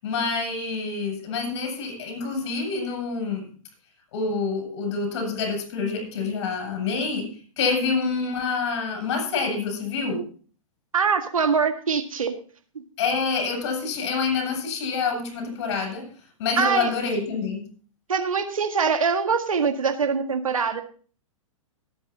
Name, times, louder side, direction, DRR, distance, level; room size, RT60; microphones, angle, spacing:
voice 1, 0.0-3.5 4.1-7.3 7.6-10.2 13.0-16.1 16.4-17.6, left 4 dB, 50° left, 3 dB, 7.3 m, -27 dB
voice 2, 10.9-12.4 16.6-16.9 18.1-20.8, right 5 dB, 75° right, 6 dB, 1.8 m, -23 dB
23.0 x 9.3 x 2.8 m, 0.41 s
figure-of-eight pair, 110°, 18 cm